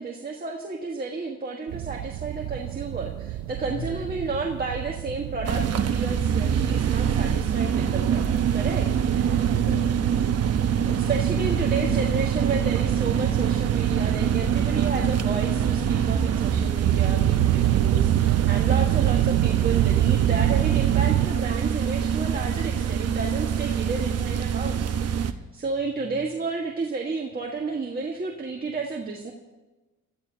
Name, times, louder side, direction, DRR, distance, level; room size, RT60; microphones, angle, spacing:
voice 1, 0.0-9.4 10.9-29.3, right 3 dB, 30° right, -1 dB, 1.6 m, -32 dB
sound 1, 1.7-21.3, right 15 dB, 80° right, 0.5 m, -28 dB
voice 2, 3.7-4.1 9.2-11.0 11.3-12.0 23.3-23.4 25.3-25.4, left 6 dB, 70° left, -3 dB, 3.5 m, -40 dB
sound 2, 5.4-25.3, right 8 dB, 55° right, 1.0 m, -25 dB
25.5 x 13.5 x 2.9 m, 1.2 s
cardioid pair, 90°, 30 cm